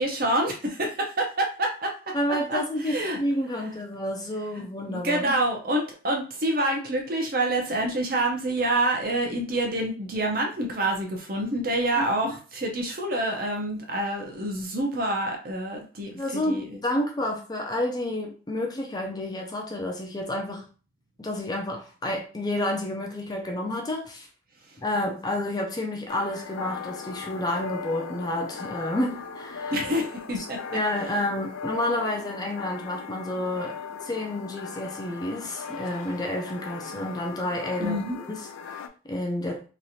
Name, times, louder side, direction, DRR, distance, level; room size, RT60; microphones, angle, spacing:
voice 1, 0.0-2.1 2.5-3.2 4.6-16.8 29.7-30.6 37.8-38.2, right 1 dB, 45° right, 1 dB, 0.7 m, -27 dB
voice 2, 2.1-5.4 12.0-12.3 16.1-20.6 21.2-24.3 24.8-29.8 30.7-33.8 34.0-38.4 38.7-39.6, left 1 dB, 20° left, 1 dB, 0.4 m, -30 dB
sound 1, 26.1-38.9, left 6 dB, 85° left, 0.4 m, -38 dB
3.1 x 2.5 x 2.7 m, 0.37 s
head